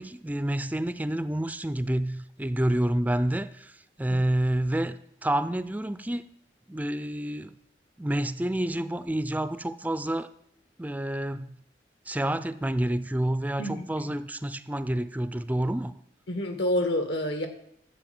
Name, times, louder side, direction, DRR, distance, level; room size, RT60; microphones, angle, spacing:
voice 1, 0.0-3.7 4.0-6.3 6.7-7.6 8.0-10.3 10.8-11.5 12.1-16.0, right 1 dB, 10° right, 13 dB, 0.4 m, -28 dB
voice 2, 13.6-14.1 16.3-17.5, left 1 dB, 80° left, 7 dB, 2.1 m, -28 dB
12.5 x 7.9 x 7.8 m, 0.71 s
head